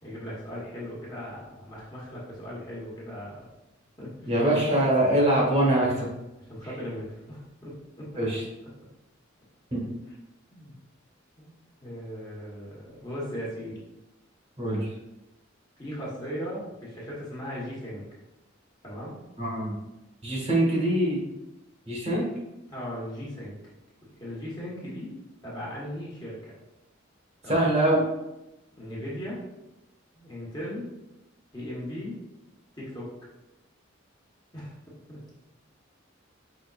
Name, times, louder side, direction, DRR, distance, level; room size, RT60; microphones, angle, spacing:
voice 1, 0.0-3.5 4.0-4.3 6.4-8.1 10.5-10.7 11.4-11.5 11.8-13.8 15.8-18.0 18.8-19.2 22.7-23.6 24.2-25.1 25.4-26.5 27.4-27.7 28.8-29.4 30.1-31.0 31.5-32.2 32.8-33.1 34.5-34.7 35.1-35.2, equal, 20° left, -6 dB, 1.3 m, -38 dB
voice 2, 4.3-6.1 8.2-8.4 9.7-9.8 14.6-14.9 19.4-19.7 20.2-21.2 21.8-22.3 27.5-28.0, right 1 dB, 35° right, -4 dB, 1.3 m, -23 dB
5.1 x 3.6 x 2.4 m, 0.94 s
head